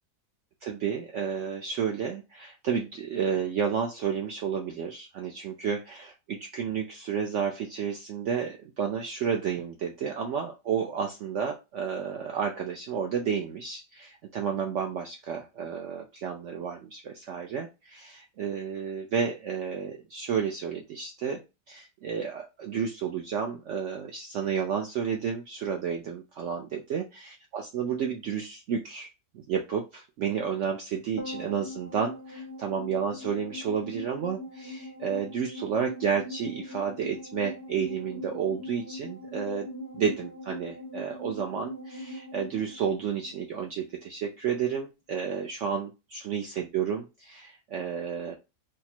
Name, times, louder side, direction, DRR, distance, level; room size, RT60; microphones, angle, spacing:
voice 1, 0.6-21.4 21.7-29.1 29.3-39.7 39.9-48.4, right 7 dB, 85° right, 2 dB, 0.6 m, -31 dB
sound 1, 31.2-43.7 43.9-44.0, left 1 dB, 15° right, 0.6 m, -41 dB
3.6 x 2.0 x 4.2 m, 0.26 s
omnidirectional pair, 1.8 m